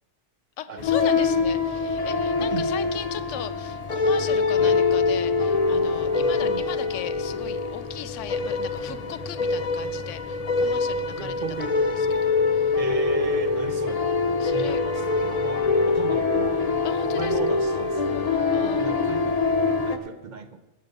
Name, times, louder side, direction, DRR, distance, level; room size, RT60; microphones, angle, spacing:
voice 1, 0.6-11.4 12.0-12.8 14.4-14.8 16.8-17.6 18.5-18.8, left 10 dB, 85° left, 14 dB, 0.9 m, -37 dB
sound 1, 0.8-20.0, left 4 dB, 35° left, 0.8 m, -24 dB
voice 2, 2.4-2.7 4.6-4.8 6.2-6.7 11.2-11.8 12.8-14.1 14.4-16.8 17.0-18.3 18.6-19.4 19.9-20.6, right 5 dB, 45° right, 10 dB, 0.8 m, -36 dB
16.5 x 6.5 x 5.4 m, 1.0 s
omnidirectional pair, 1.2 m